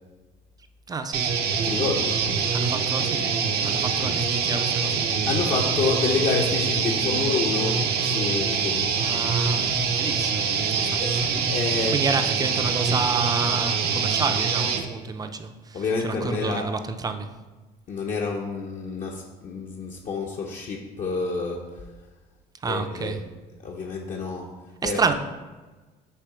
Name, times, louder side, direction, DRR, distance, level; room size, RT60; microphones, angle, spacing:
voice 1, 0.9-1.4 2.5-5.1 9.0-11.3 11.7-17.3 22.6-23.2 24.8-25.1, right 4 dB, 20° right, 8 dB, 0.4 m, -30 dB
sound 1, 1.1-14.8, right 6 dB, 70° right, 0.7 m, -24 dB
voice 2, 1.6-2.2 3.7-3.8 5.3-9.0 11.0-11.1 11.5-11.9 15.7-16.7 17.9-21.6 22.7-23.2 23.6-24.5 24.8-25.0, left 4 dB, 50° left, -1 dB, 0.6 m, -28 dB
6.7 x 3.0 x 4.8 m, 1.2 s
cardioid pair, 110°, 17 cm